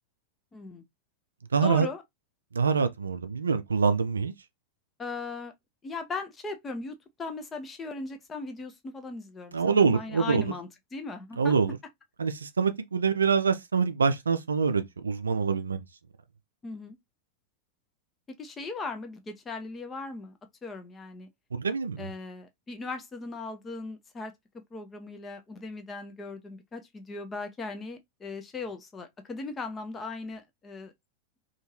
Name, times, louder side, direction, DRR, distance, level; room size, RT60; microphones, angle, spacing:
voice 1, 0.5-0.8 1.6-2.0 5.0-5.5 5.8-11.5 16.6-17.0 18.4-21.3 22.0-24.3 24.7-30.9, left 3 dB, 20° left, 0.6 m, -38 dB
voice 2, 1.5-1.9 2.5-4.3 9.5-10.5 11.4-11.8 12.2-15.8 21.5-22.1, right 5 dB, 75° right, 0.3 m, -25 dB
2.6 x 2.4 x 3.0 m
figure-of-eight pair, 90°, 0 cm